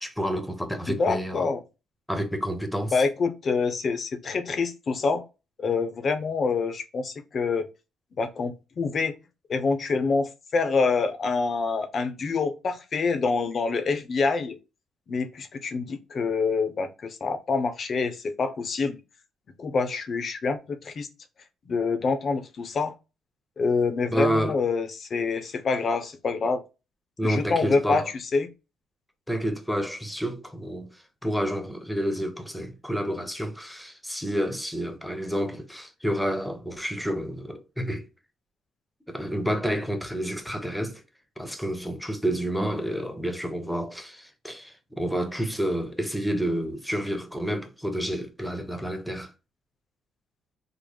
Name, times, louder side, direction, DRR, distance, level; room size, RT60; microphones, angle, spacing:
voice 1, 0.0-1.5 2.1-2.9 24.1-24.6 27.2-28.1 29.3-30.9 31.2-38.1 39.1-41.0 41.4-49.3, equal, 5° left, 0.8 m, -29 dB
voice 2, 0.9-1.6 2.9-5.2 5.6-7.7 8.2-9.1 9.5-14.6 15.1-19.0 19.6-21.1 21.7-22.9 23.6-26.6 27.2-28.5, left 4 dB, 50° left, 0.7 m, -26 dB
3.7 x 2.0 x 3.3 m
cardioid pair, 90°, 0 cm